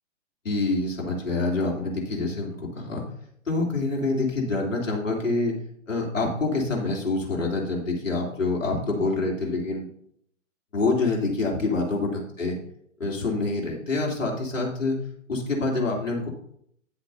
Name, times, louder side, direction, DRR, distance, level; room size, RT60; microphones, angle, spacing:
voice 1, 0.4-3.0 3.4-5.6 5.9-9.9 10.7-12.6 13.0-15.0 15.3-16.3, left 3 dB, 75° left, -1 dB, 3.3 m, -26 dB
10.5 x 8.1 x 2.8 m, 0.68 s
figure-of-eight pair, 125°, 38 cm